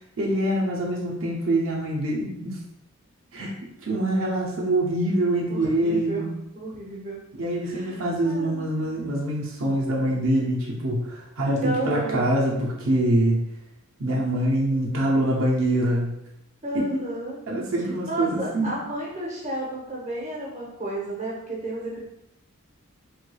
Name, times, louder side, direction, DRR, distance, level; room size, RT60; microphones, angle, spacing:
voice 1, 0.2-2.6 3.3-3.5 3.8-6.3 7.4-13.4 14.0-16.1 16.7-16.9 17.5-18.8, right 1 dB, 70° right, -3 dB, 0.7 m, -24 dB
voice 2, 5.5-7.2 7.6-8.9 11.5-12.3 16.6-17.4 18.1-22.0, right 1 dB, 35° right, -4 dB, 0.8 m, -32 dB
3.4 x 3.2 x 2.3 m, 0.85 s
head